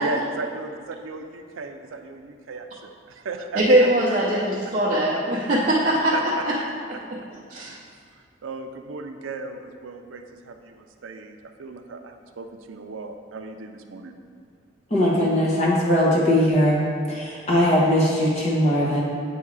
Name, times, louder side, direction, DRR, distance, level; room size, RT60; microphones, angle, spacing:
voice 1, 0.0-3.9 6.1-6.4 6.9-7.0 7.7-7.8 8.4-14.2, right 3 dB, 85° right, 6 dB, 0.5 m, -35 dB
voice 2, 3.5-6.6 6.9-7.2 7.5-7.7, right 1 dB, 35° right, -7 dB, 0.6 m, -21 dB
voice 3, 14.9-16.8 17.1-19.0, left 1 dB, 35° left, -5 dB, 1.0 m, -20 dB
8.4 x 2.8 x 4.7 m, 2.2 s
head